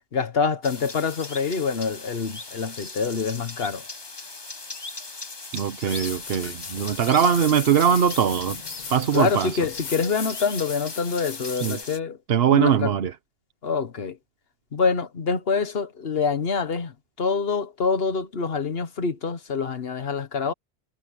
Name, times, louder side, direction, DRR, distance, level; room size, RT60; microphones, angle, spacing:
voice 1, 0.1-3.8 9.1-12.2 12.5-12.9 13.6-14.2 14.7-20.5, left 5 dB, 70° left, 1.5 m, -26 dB
sound 1, 0.6-12.0, left 3 dB, 25° left, 1.0 m, -39 dB
voice 2, 5.5-8.6 8.9-9.5 11.6-11.8 12.3-13.1, right 8 dB, 70° right, 1.0 m, -21 dB
sound 2, 5.9-11.8, left 5 dB, 45° left, 1.1 m, -38 dB
omnidirectional pair, 1.1 m